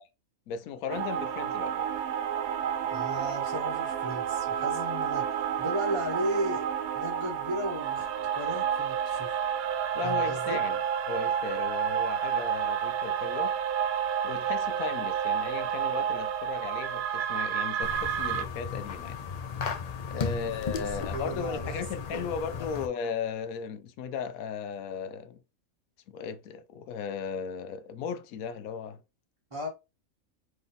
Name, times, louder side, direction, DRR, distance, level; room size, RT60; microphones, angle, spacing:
voice 1, 0.5-1.9 9.9-10.8 11.1-13.6 14.2-19.2 20.0-25.4 26.1-29.0, left 6 dB, 85° left, 1.1 m, -36 dB
sound 1, 0.9-18.4, right 8 dB, 85° right, 1.1 m, -30 dB
voice 2, 2.8-9.4 10.0-10.6 20.1-21.8 22.1-22.8 29.5-29.7, right 1 dB, 25° right, 1.5 m, -36 dB
sound 2, 17.8-22.9, left 5 dB, 70° left, 0.3 m, -35 dB
4.0 x 3.4 x 3.4 m
omnidirectional pair, 1.4 m